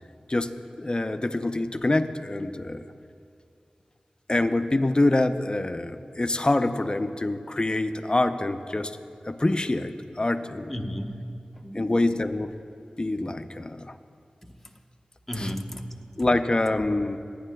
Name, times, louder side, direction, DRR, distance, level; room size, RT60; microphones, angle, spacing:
voice 1, 0.3-2.8 4.3-9.0 9.2-10.7 11.7-12.5 13.0-13.9 15.4-15.5 16.2-17.2, left 2 dB, 35° left, 9 dB, 0.5 m, -25 dB
voice 2, 10.7-12.1 14.4-14.5 15.3-16.3, equal, 5° left, 1 dB, 1.0 m, -35 dB
22.5 x 10.0 x 2.3 m, 2.4 s
wide cardioid pair, 45°, 3 cm